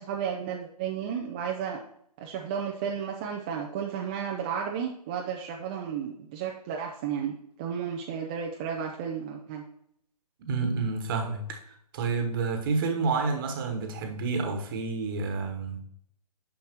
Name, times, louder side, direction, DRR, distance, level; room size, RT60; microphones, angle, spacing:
voice 1, 0.0-1.8 2.2-9.6, right 7 dB, 15° right, 0.4 m, -33 dB
voice 2, 10.4-15.8, right 4 dB, 35° right, 1.2 m, -29 dB
9.5 x 6.4 x 2.9 m
figure-of-eight pair, 135°, 20 cm